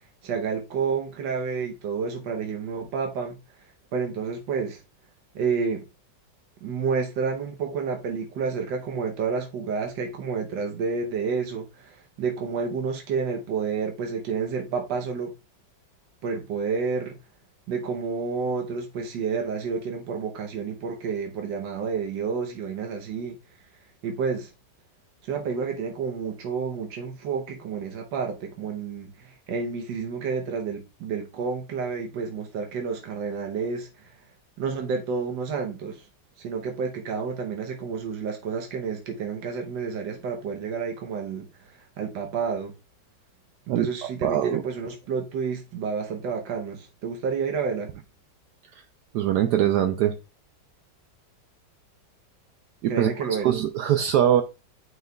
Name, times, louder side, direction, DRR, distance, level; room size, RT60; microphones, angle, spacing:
voice 1, 0.2-3.4 3.9-4.8 5.3-5.8 6.6-15.3 16.2-17.2 17.7-23.4 24.0-24.5 25.2-34.1 34.6-36.0 36.4-42.7 43.7-47.9 52.9-53.5, right 5 dB, 90° right, 1.6 m, -30 dB
voice 2, 43.7-44.6 49.1-50.1 52.8-54.4, right 11 dB, 75° right, 1.1 m, -23 dB
9.4 x 4.6 x 2.3 m
omnidirectional pair, 1.9 m